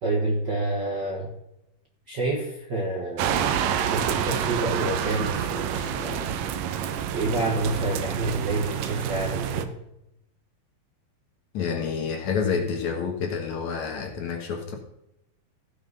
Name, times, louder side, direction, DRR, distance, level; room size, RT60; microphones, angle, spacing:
voice 1, 0.0-1.3 2.1-6.3 7.1-9.7, right 2 dB, 45° right, -1 dB, 1.5 m, -28 dB
sound 1, 3.2-9.7, right 9 dB, 80° right, 2.4 m, -28 dB
voice 2, 11.5-14.8, left 6 dB, 60° left, 3 dB, 2.5 m, -28 dB
15.5 x 6.2 x 5.4 m, 0.86 s
omnidirectional pair, 4.0 m